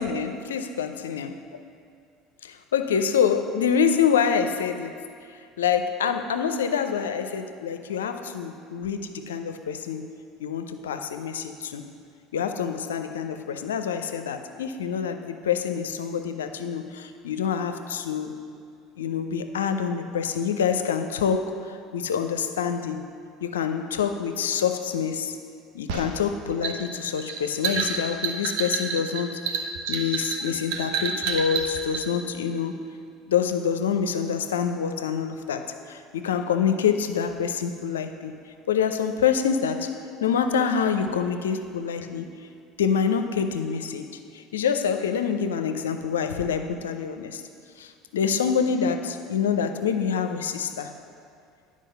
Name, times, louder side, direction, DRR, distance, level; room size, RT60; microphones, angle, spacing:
voice 1, 0.0-1.3 2.4-5.0 5.6-10.1 10.4-11.8 12.3-18.3 19.0-23.1 23.4-25.4 25.7-32.8 33.3-38.3 38.7-39.9 40.2-42.3 42.8-44.1 44.3-47.4 47.8-50.9, left 7 dB, 85° left, 8 dB, 0.5 m, -26 dB
sound 1, 25.9-32.1, right 6 dB, 70° right, 0.8 m, -29 dB
10.0 x 5.0 x 6.6 m, 2.3 s
hypercardioid pair, 70°, 0 cm